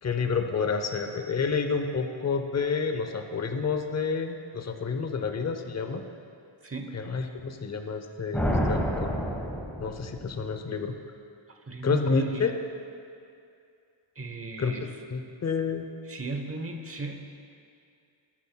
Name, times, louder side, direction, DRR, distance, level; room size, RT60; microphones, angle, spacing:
voice 1, 0.0-6.0 6.9-9.1 9.8-10.9 11.8-12.5 14.6-14.8 15.1-15.9, left 5 dB, 35° left, 6 dB, 0.7 m, -29 dB
voice 2, 6.6-7.0 11.7-12.5 14.2-14.9 16.1-17.5, right 3 dB, 30° right, 4 dB, 1.0 m, -37 dB
sound 1, 8.3-10.3, equal, 5° left, 1.2 m, -28 dB
16.0 x 9.6 x 2.3 m, 2.4 s
wide cardioid pair, 80°, 49 cm